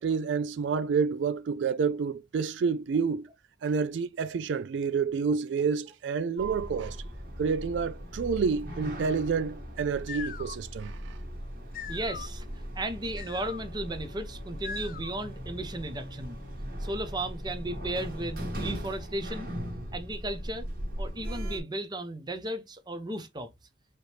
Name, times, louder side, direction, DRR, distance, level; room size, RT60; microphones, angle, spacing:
voice 1, 0.0-3.3 3.6-7.0 7.4-11.2, right 5 dB, 75° right, 0.3 m, -29 dB
Sliding door, 6.4-21.6, equal, 50° right, 1.8 m, -38 dB
sound 1, 9.8-15.4, left 6 dB, 50° left, 0.4 m, -43 dB
voice 2, 11.9-12.5 12.7-16.4 16.8-19.5 19.9-20.7 21.0-23.5, right 1 dB, 25° right, 0.7 m, -35 dB
4.9 x 2.9 x 3.3 m
head